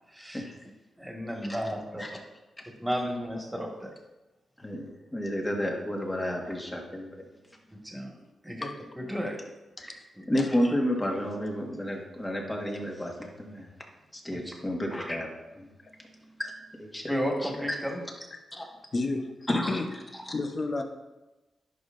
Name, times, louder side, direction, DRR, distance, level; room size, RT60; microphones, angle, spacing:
voice 1, 0.1-0.4 1.0-2.0 2.6-3.9 7.7-8.2 8.4-8.7 9.0-9.4 10.2-10.3 14.3-14.5 17.1-18.0, equal, 10° right, 0 dB, 2.0 m, -33 dB
voice 2, 4.6-7.1 9.8-10.0 10.3-13.7 14.1-15.7 16.4-16.5 16.8-17.1 17.4-17.7 18.5-18.7 19.5-19.7 20.3-20.4, equal, 20° left, 0 dB, 1.8 m, -31 dB
voice 3, 18.9-19.9 20.3-20.8, left 3 dB, 45° left, 5 dB, 1.0 m, -30 dB
11.0 x 5.4 x 2.7 m, 1.0 s
supercardioid pair, 50°, 0 cm